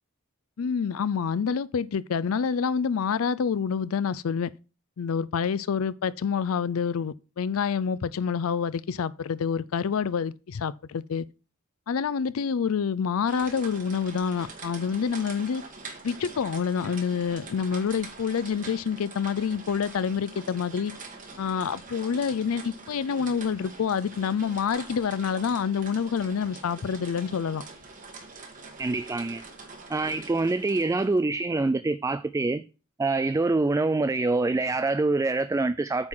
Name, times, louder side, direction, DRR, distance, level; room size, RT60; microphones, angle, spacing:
voice 1, 0.6-4.5 5.0-11.3 11.9-15.6 16.0-20.9 21.4-27.6, left 6 dB, 80° left, 0.4 m, -27 dB
sound 1, 13.3-31.2, right 4 dB, 40° right, 2.0 m, -44 dB
voice 2, 28.8-29.4 29.9-32.6 33.0-36.1, right 3 dB, 15° right, 0.3 m, -25 dB
8.9 x 3.8 x 6.1 m
head